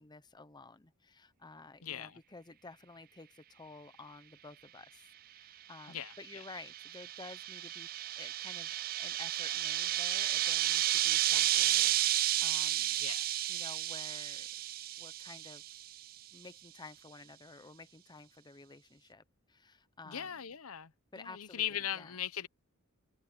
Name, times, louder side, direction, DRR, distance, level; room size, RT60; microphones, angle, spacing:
voice 1, 0.0-7.9 8.2-13.0 13.5-14.5 15.0-15.6 16.3-20.4 21.1-22.1, left 3 dB, 20° left, 0.8 m, -52 dB
voice 2, 1.8-2.2 5.9-6.4 13.0-13.3 20.0-20.9 21.2-22.5, left 10 dB, 90° left, 0.9 m, -39 dB
sound 1, 6.1-15.9, right 13 dB, 45° right, 0.4 m, -32 dB
head